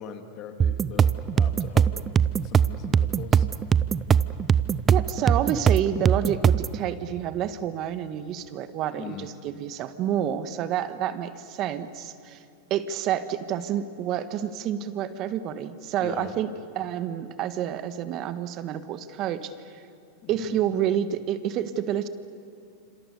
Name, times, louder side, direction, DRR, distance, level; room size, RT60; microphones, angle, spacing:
voice 1, 0.0-3.5 9.0-9.3 16.0-16.3 20.2-20.6, left 7 dB, 45° left, 5 dB, 2.8 m, -41 dB
sound 1, 0.6-6.8, right 7 dB, 25° right, 0.7 m, -21 dB
voice 2, 4.9-12.4 12.7-19.7 20.3-22.1, right 10 dB, 45° right, 11 dB, 1.6 m, -29 dB
27.0 x 27.0 x 7.0 m, 2.6 s
hypercardioid pair, 110°, 0 cm